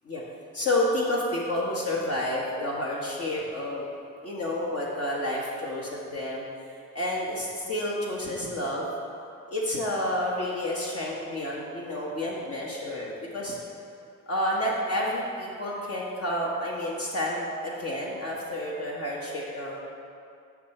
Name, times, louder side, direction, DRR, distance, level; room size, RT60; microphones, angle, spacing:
voice 1, 0.5-3.8 4.2-6.5 6.9-8.9 9.5-13.6 14.3-19.8, left 1 dB, 50° left, -4 dB, 1.4 m, -30 dB
8.5 x 5.9 x 4.3 m, 2.4 s
cardioid pair, 90°, 30 cm